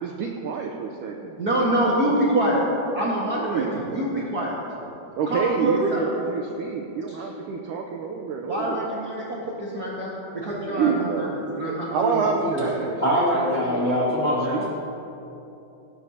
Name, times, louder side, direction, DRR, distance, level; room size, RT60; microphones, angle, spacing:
voice 1, 0.0-2.3 3.4-4.2 5.2-8.9 10.7-13.3 13.5-14.7, right 5 dB, 80° right, 2 dB, 1.9 m, -28 dB
voice 2, 1.4-2.6 2.9-4.6 5.3-6.0 8.5-11.2 11.5-12.3 12.5-12.7, right 1 dB, 50° right, -6 dB, 1.1 m, -25 dB
voice 3, 13.0-14.7, equal, 20° left, -7 dB, 2.0 m, -23 dB
18.0 x 16.5 x 2.8 m, 2.9 s
omnidirectional pair, 4.4 m